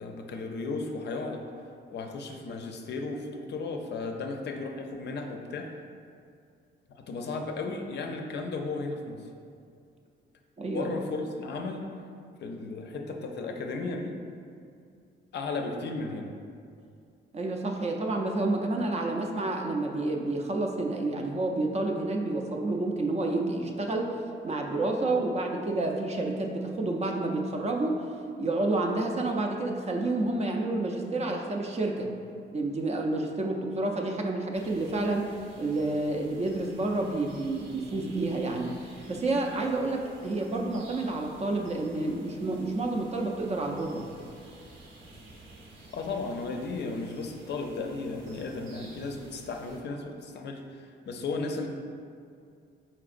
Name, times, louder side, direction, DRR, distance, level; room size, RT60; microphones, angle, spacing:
voice 1, 0.0-1.4 1.9-5.7 6.9-9.3 10.6-11.9 12.4-14.2 15.3-16.3 45.9-51.7, left 3 dB, 60° left, 3 dB, 0.5 m, -35 dB
voice 2, 17.3-24.1 24.4-28.0 28.4-32.1 32.5-35.3 35.6-44.1, right 2 dB, 35° right, 2 dB, 0.4 m, -29 dB
sound 1, 34.5-49.8, right 1 dB, 75° right, 0.8 m, -51 dB
4.8 x 4.2 x 2.5 m, 2.4 s
cardioid pair, 120°, 20 cm